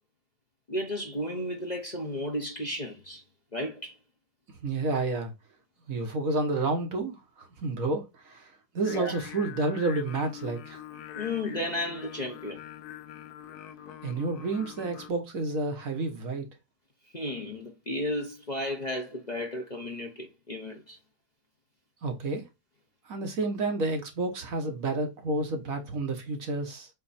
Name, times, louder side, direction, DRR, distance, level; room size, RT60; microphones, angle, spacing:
voice 1, 0.7-3.2 3.5-3.9 8.8-9.2 11.1-12.6 17.1-21.0, left 1 dB, 30° left, 1.0 m, -33 dB
voice 2, 4.6-5.3 5.9-8.5 8.7-10.8 14.0-16.5 22.0-22.4 23.1-26.9, right 3 dB, 60° right, 1.6 m, -30 dB
Singing, 8.8-15.1, left 10 dB, 75° left, 1.3 m, -44 dB
7.6 x 3.0 x 4.3 m
omnidirectional pair, 1.7 m